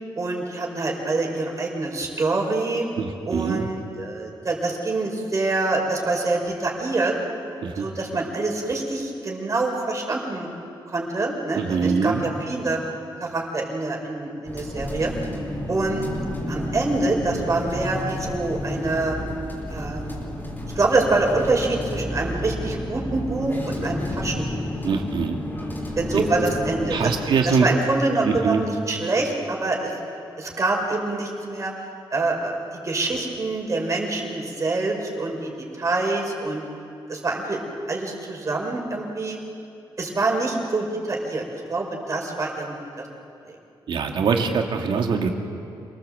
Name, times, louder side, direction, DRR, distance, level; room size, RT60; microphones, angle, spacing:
voice 1, 0.2-2.8 3.3-7.1 7.7-10.5 10.9-12.8 13.2-15.1 15.7-16.1 16.5-19.2 19.7-20.1 20.7-24.6 26.0-27.1 27.4-29.9 30.4-31.7 32.1-32.6 32.8-36.7 37.1-37.6 37.9-39.4 40.0-43.1 43.4-43.5, right 2 dB, 40° right, 1 dB, 5.2 m, -25 dB
voice 2, 3.0-3.7 7.6-7.9 11.5-12.3 24.8-25.4 26.1-26.2 26.9-27.7 28.2-28.6 43.9-45.3, right 5 dB, 70° right, 3 dB, 2.5 m, -23 dB
sound 1, 14.5-27.2, left 1 dB, 25° left, 4.6 m, -31 dB
28.0 x 19.0 x 7.8 m, 2.6 s
cardioid pair, 95°, 9 cm